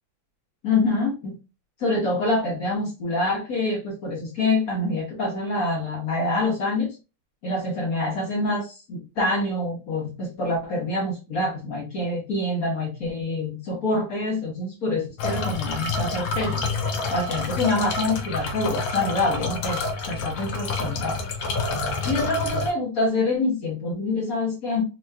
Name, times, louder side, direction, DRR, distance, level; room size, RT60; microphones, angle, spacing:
voice 1, 0.6-1.4 1.8-7.0 7.4-16.6 17.1-21.2 22.0-24.8, left 2 dB, 50° left, -2 dB, 1.4 m, -26 dB
sound 1, 15.2-22.7, left 3 dB, 90° left, 1.6 m, -28 dB
3.7 x 2.9 x 2.3 m, 0.29 s
omnidirectional pair, 2.3 m